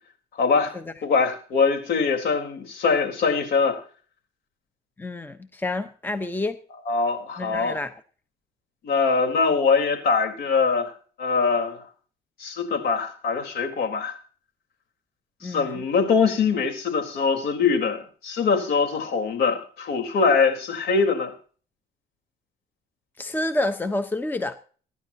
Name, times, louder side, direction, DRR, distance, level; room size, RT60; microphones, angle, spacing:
voice 1, 0.3-0.7 1.0-3.8 6.9-7.8 8.8-10.9 11.2-11.8 12.4-14.2 15.4-21.3, left 5 dB, 65° left, 4 dB, 4.1 m, -23 dB
voice 2, 5.0-6.6 7.4-7.9 15.4-15.8 23.2-24.6, left 2 dB, 10° left, 10 dB, 1.0 m, -28 dB
25.0 x 10.5 x 2.9 m, 0.41 s
cardioid pair, 110°, 17 cm